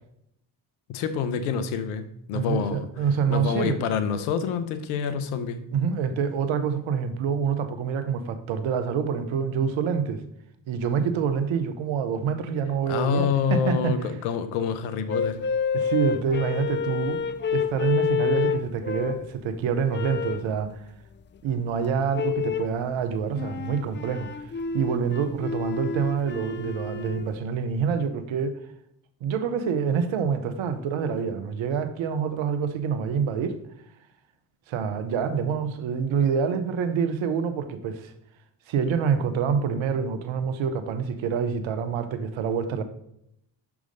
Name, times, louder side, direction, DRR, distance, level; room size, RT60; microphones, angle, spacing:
voice 1, 0.9-2.9 3.3-5.6 12.9-15.4, left 7 dB, 85° left, 0.7 m, -27 dB
voice 2, 2.3-3.8 5.7-10.2 10.7-14.0 15.7-17.2 17.5-20.7 21.4-24.3 24.7-28.6 29.2-33.6 34.7-38.1 38.7-42.8, right 6 dB, 70° right, 0.9 m, -26 dB
sound 1, 15.1-19.3 19.9-20.5 22.1-22.8 23.4-27.3, left 6 dB, 25° left, 0.4 m, -29 dB
6.1 x 3.6 x 5.2 m
hypercardioid pair, 45°, 49 cm